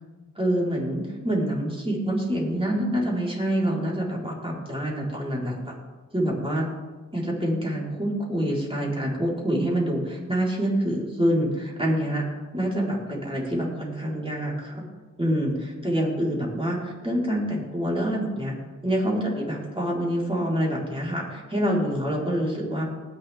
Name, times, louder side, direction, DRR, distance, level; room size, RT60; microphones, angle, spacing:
voice 1, 0.4-5.8 6.1-6.7 7.1-12.2 12.5-14.8 15.2-18.5 18.8-22.8, equal, 15° right, -4 dB, 4.6 m, -26 dB
20.0 x 7.4 x 3.7 m, 1.3 s
cardioid pair, 50°, 31 cm